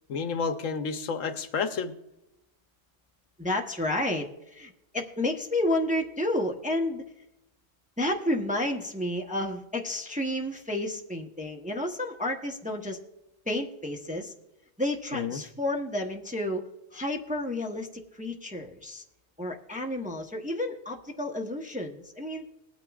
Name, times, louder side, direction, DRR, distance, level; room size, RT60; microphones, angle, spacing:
voice 1, 0.1-1.9 15.1-15.4, left 5 dB, 75° left, 8 dB, 1.2 m, -30 dB
voice 2, 3.4-7.0 8.0-13.0 13.5-14.3 14.8-19.0 19.4-22.5, left 1 dB, 5° right, 1 dB, 0.8 m, -31 dB
20.0 x 9.4 x 2.4 m, 0.92 s
omnidirectional pair, 1.4 m